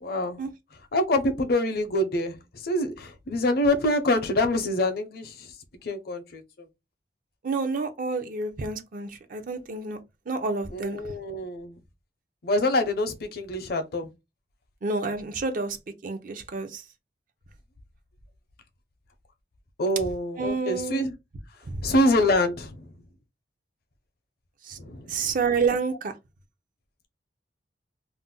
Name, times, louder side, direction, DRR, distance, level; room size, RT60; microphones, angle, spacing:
voice 1, 0.0-0.4 0.9-5.5 5.8-6.7 10.7-11.8 12.4-14.1 19.8-21.1 21.8-22.9 24.8-25.2, left 1 dB, 60° left, 0.6 m, -26 dB
voice 2, 7.4-10.0 10.3-11.0 14.8-15.8 16.0-16.8 20.4-21.0 21.7-21.9 24.6-24.8 25.1-26.1, right 4 dB, 50° right, 0.5 m, -29 dB
2.5 x 2.0 x 3.6 m
head